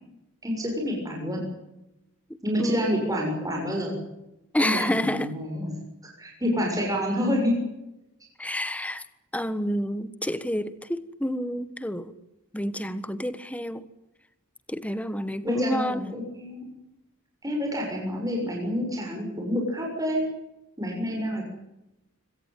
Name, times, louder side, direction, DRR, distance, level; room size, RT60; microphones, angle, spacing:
voice 1, 0.4-1.4 2.4-3.9 4.6-5.7 6.0-7.6 15.4-16.6 17.4-20.3 20.8-21.5, equal, 15° right, 6.8 m, -28 dB
voice 2, 4.5-5.3 8.4-9.0 9.3-12.1 12.5-13.9 14.7-16.1, equal, 5° left, 1.4 m, -29 dB
25.0 x 18.0 x 9.3 m
head